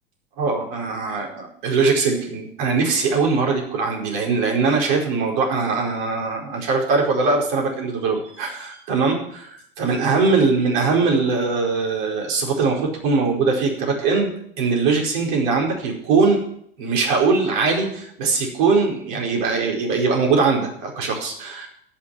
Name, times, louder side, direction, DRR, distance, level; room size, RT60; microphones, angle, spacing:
voice 1, 0.4-9.5 9.8-16.4 16.8-21.7, right 4 dB, 55° right, 0 dB, 4.7 m, -21 dB
13.5 x 6.0 x 9.8 m, 0.68 s
figure-of-eight pair, 90°, 30 cm